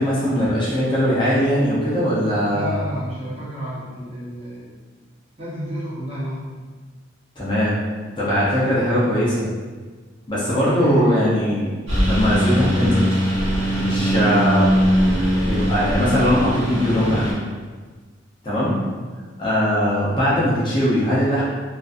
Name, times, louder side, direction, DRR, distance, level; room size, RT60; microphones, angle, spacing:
voice 1, 0.0-2.8 7.4-7.8 8.2-9.5 10.3-11.7 12.0-13.0 13.8-14.8 15.4-17.4 18.4-18.8 19.4-21.4, equal, 25° left, -8 dB, 0.6 m, -20 dB
voice 2, 2.4-4.8 5.4-6.6 8.9-9.0 10.5-11.2 18.5-18.9, equal, 30° right, -9 dB, 0.8 m, -30 dB
Engine, 11.9-17.3, equal, 85° right, 0.9 m, -20 dB
2.5 x 2.3 x 2.5 m, 1.4 s
head